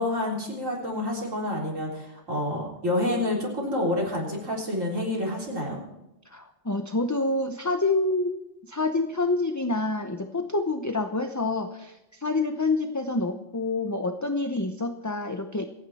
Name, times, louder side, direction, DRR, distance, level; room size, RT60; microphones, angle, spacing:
voice 1, 0.0-5.8, left 1 dB, 85° right, -2 dB, 4.2 m, -28 dB
voice 2, 6.3-8.3 8.7-15.6, left 2 dB, 20° left, 7 dB, 0.7 m, -27 dB
26.5 x 9.5 x 4.2 m, 0.95 s
omnidirectional pair, 1.3 m